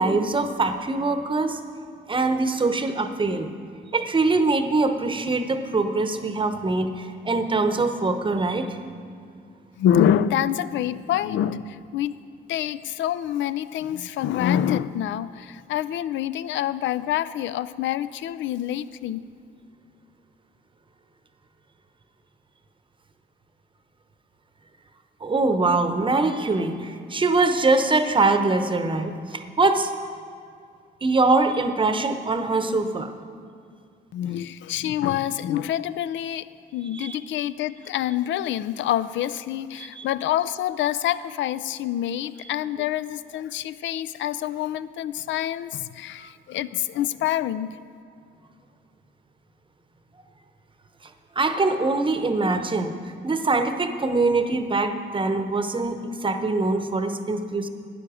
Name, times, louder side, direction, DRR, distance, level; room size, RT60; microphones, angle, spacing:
voice 1, 0.0-1.6 2.1-3.5 3.9-8.8 25.2-29.9 31.0-33.1 36.9-37.2 39.8-40.1 46.2-46.3 51.3-52.9 53.2-57.7, right 3 dB, 25° right, 8 dB, 0.8 m, -23 dB
voice 2, 9.8-12.2 12.5-19.3 34.1-36.5 36.7-47.8, left 11 dB, 70° left, 16 dB, 0.4 m, -26 dB
12.5 x 9.6 x 4.9 m, 2.3 s
cardioid pair, 90°, 20 cm